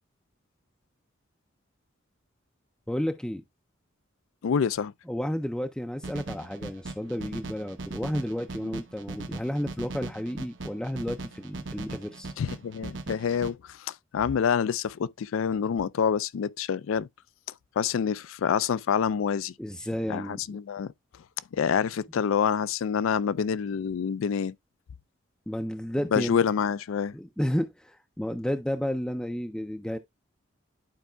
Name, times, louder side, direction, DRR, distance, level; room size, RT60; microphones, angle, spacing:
voice 1, 2.9-3.4 5.1-12.3 19.6-20.6 25.5-26.4 27.1-30.0, equal, 5° left, 0.3 m, -32 dB
voice 2, 4.4-4.9 8.6-8.7 12.4-17.1 17.8-19.5 20.1-20.9 21.5-24.5 26.1-27.1, left 7 dB, 80° left, 0.4 m, -27 dB
sound 1, 6.0-13.5, right 3 dB, 60° right, 0.8 m, -39 dB
11.5 x 4.6 x 2.2 m
head